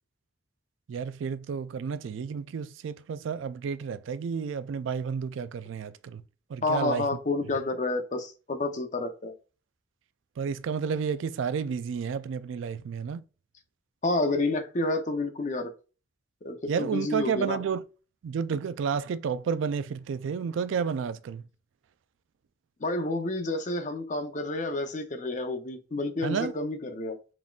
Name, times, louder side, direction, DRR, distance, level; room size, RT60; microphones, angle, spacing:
voice 1, 0.9-6.2 6.5-7.1 10.4-13.2 16.7-17.8 18.2-21.4 26.2-26.5, right 6 dB, 80° right, 0.3 m, -31 dB
voice 2, 6.6-9.3 14.0-15.7 16.4-17.6 22.8-27.2, left 2 dB, 40° left, 0.6 m, -29 dB
3.9 x 3.5 x 2.3 m
head